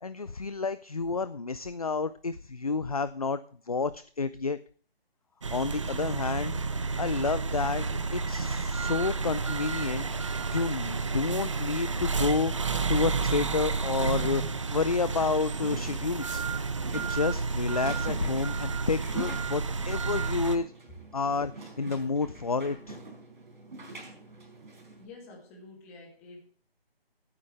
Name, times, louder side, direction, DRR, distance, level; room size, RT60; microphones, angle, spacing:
voice 1, 0.0-3.4 3.7-4.6 5.5-6.6 7.0-7.9 8.1-12.5 12.9-16.4 16.9-20.7 21.1-23.0, left 4 dB, 40° left, 14 dB, 0.4 m, -30 dB
sound 1, 5.4-20.6, right 4 dB, 30° right, 0.7 m, -31 dB
sound 2, 15.4-25.1, right 2 dB, 50° right, 4.5 m, -44 dB
voice 2, 25.0-26.5, left 3 dB, 15° left, 0 dB, 2.5 m, -49 dB
16.5 x 9.8 x 3.3 m, 0.43 s
figure-of-eight pair, 160°, 31 cm